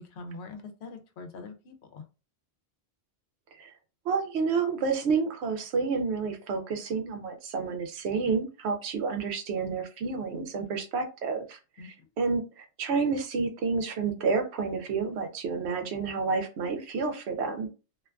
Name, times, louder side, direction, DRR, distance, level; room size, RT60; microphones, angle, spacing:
voice 1, 0.0-2.0 11.8-11.9, left 3 dB, 80° left, 6 dB, 0.9 m, -43 dB
voice 2, 4.1-11.6 11.8-17.7, right 5 dB, 85° right, 6 dB, 0.9 m, -29 dB
2.5 x 2.2 x 2.4 m, 0.32 s
omnidirectional pair, 1.1 m